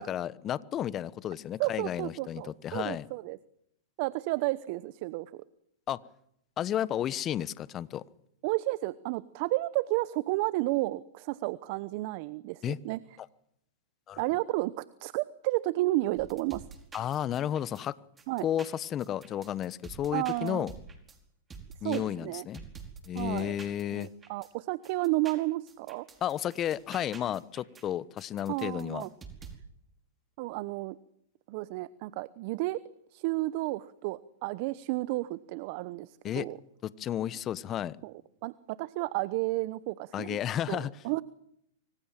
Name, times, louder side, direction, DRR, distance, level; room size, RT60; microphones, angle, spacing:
voice 1, 0.0-3.1 5.9-6.0 6.6-8.0 12.6-12.8 14.1-14.2 16.9-18.0 18.4-20.7 21.8-22.6 23.1-24.1 26.2-29.1 36.2-36.5 36.8-38.0 40.1-40.9, left 11 dB, 30° left, 18 dB, 1.2 m, -32 dB
voice 2, 1.6-3.4 4.0-5.4 8.4-13.0 14.2-16.6 18.3-18.5 20.1-20.7 21.8-22.5 23.1-23.5 23.9-26.1 28.5-29.1 30.4-31.0 31.5-32.8 33.1-36.6 38.0-38.1 38.4-40.4 40.7-41.2, right 19 dB, 50° right, 18 dB, 0.9 m, -32 dB
sound 1, 16.2-17.8 18.2-21.2 21.5-24.5 24.8-27.8 28.2-29.6, right 5 dB, 15° right, 4.8 m, -48 dB
25.5 x 25.0 x 7.5 m, 0.75 s
hypercardioid pair, 120°, 0 cm